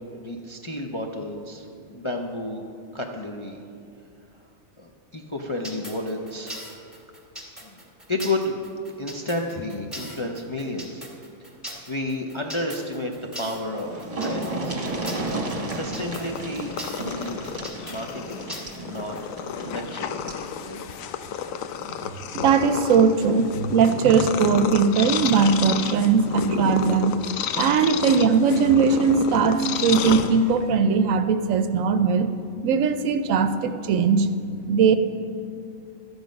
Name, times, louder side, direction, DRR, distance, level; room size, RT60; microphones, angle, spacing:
voice 1, 0.0-2.7 2.9-3.6 4.3-4.5 4.8-6.5 7.6-7.8 8.1-8.6 9.0-11.0 11.9-14.8 15.7-17.6 17.9-18.5 18.8-19.2 19.5-20.2 20.6-20.8, left 1 dB, 35° left, 1 dB, 0.5 m, -31 dB
sound 1, 5.6-19.2, equal, ahead, 1.9 m, -39 dB
sound 2, 13.7-20.5 21.8-21.9 22.3-22.4, right 2 dB, 30° right, 1.2 m, -33 dB
Purr, 15.6-30.8, left 8 dB, 75° left, 1.0 m, -31 dB
voice 2, 22.3-27.2 27.6-32.3 32.6-34.3 34.7-35.0, right 5 dB, 75° right, 10 dB, 1.0 m, -20 dB
12.5 x 8.0 x 5.2 m, 2.5 s
omnidirectional pair, 1.4 m